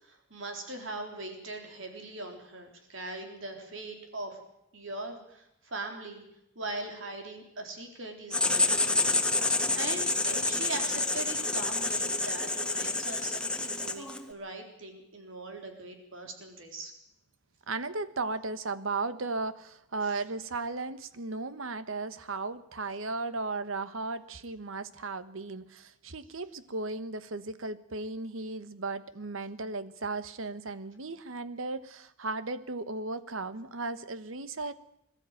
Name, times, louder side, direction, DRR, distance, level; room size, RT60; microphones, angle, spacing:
voice 1, 0.0-4.4 4.7-6.2 6.6-16.9 20.0-20.2, right 2 dB, 75° right, 4 dB, 3.9 m, -41 dB
Writing, 8.3-14.3, left 2 dB, 5° left, 1.4 m, -28 dB
voice 2, 17.7-34.7, right 3 dB, 90° right, 13 dB, 1.2 m, -36 dB
22.0 x 13.0 x 9.1 m, 0.80 s
head